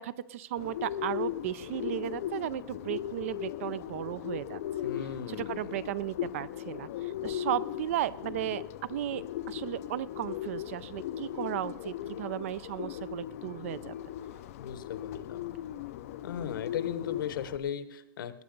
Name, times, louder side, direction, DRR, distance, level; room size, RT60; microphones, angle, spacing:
voice 1, 0.0-4.6 5.3-8.6 8.9-14.0, right 13 dB, 35° right, 19 dB, 0.4 m, -35 dB
Bird, 0.6-17.6, left 11 dB, 40° left, 0.5 m, -38 dB
voice 2, 4.8-5.8 14.6-15.6 16.2-18.4, left 9 dB, 60° left, 14 dB, 1.0 m, -37 dB
19.0 x 9.6 x 5.2 m, 0.89 s
supercardioid pair, 175°, 12 cm